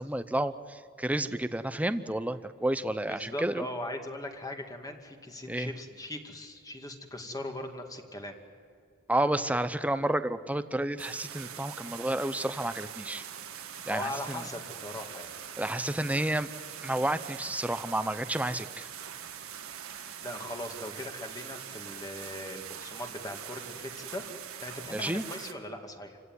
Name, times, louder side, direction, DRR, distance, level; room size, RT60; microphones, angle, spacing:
voice 1, 0.0-3.6 5.5-5.7 9.1-13.2 13.9-14.4 15.6-16.5 16.8-18.9 24.9-25.2, right 1 dB, 5° right, 12 dB, 0.8 m, -30 dB
voice 2, 3.0-8.3 13.9-15.4 20.2-24.2 24.6-26.2, left 1 dB, 15° left, 4 dB, 2.2 m, -39 dB
sound 1, 11.0-25.5, right 9 dB, 75° right, 1.7 m, -43 dB
28.0 x 16.5 x 9.6 m, 2.3 s
head